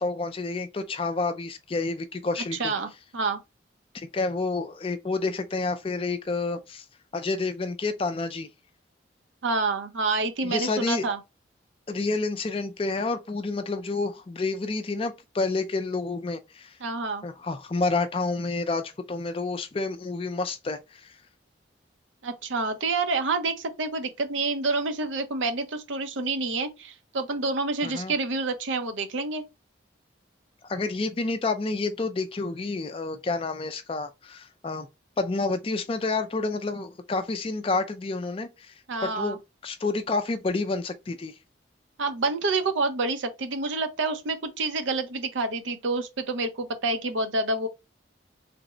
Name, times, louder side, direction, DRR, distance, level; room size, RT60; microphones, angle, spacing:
voice 1, 0.0-2.7 3.9-6.8 7.1-8.5 10.4-11.1 11.9-16.7 17.2-21.1 27.8-28.1 30.7-34.9 35.2-38.7 39.0-39.4 39.6-41.3, left 3 dB, 30° left, 0.4 m, -29 dB
voice 2, 2.6-3.4 9.4-11.2 16.8-17.3 22.2-29.4 38.9-39.4 42.0-47.7, right 3 dB, 90° right, 0.6 m, -28 dB
3.4 x 2.0 x 3.8 m
head